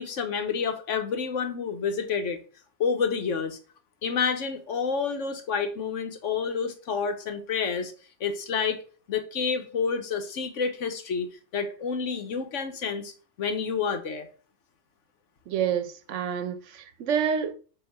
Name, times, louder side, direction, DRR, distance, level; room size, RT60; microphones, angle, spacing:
voice 1, 0.0-2.4 2.8-3.6 4.0-7.9 8.2-8.8 9.1-13.1 13.4-14.3, left 6 dB, 85° left, 1.4 m, -29 dB
voice 2, 15.5-17.5, right 7 dB, 80° right, 1.0 m, -28 dB
7.9 x 2.9 x 5.9 m
omnidirectional pair, 1.2 m